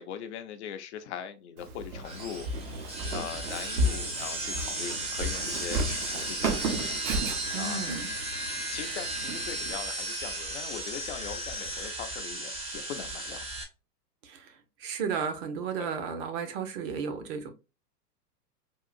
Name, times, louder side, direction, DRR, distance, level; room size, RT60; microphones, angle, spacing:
voice 1, 0.0-2.8 3.1-7.1 7.6-7.9 8.7-13.5 15.8-15.9, left 9 dB, 45° left, 0.5 m, -41 dB
Walk footsteps, 1.6-9.7, right 1 dB, 65° right, 1.0 m, -34 dB
sound 1, 2.0-13.6, right 2 dB, 15° right, 0.7 m, -35 dB
voice 2, 7.5-8.1 14.2-17.5, right 6 dB, 40° right, 0.8 m, -34 dB
3.7 x 2.4 x 2.4 m
hypercardioid pair, 110°, 48 cm